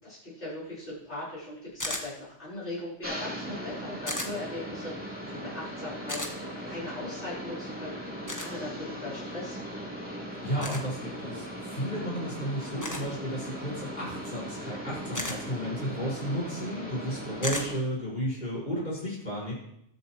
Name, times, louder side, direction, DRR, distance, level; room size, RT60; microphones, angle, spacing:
voice 1, 0.0-9.6, left 2 dB, 70° left, -9 dB, 5.0 m, -40 dB
sound 1, 1.8-2.1 4.1-4.3 6.1-6.3 8.3-8.5 10.6-10.8 12.8-13.1 15.1-15.4 17.4-17.7, left 1 dB, 15° left, 1.4 m, -33 dB
sound 2, 3.0-17.8, equal, 10° right, 2.9 m, -39 dB
voice 2, 10.4-19.5, equal, 45° left, -6 dB, 5.9 m, -33 dB
20.5 x 7.3 x 3.2 m, 0.77 s
omnidirectional pair, 1.2 m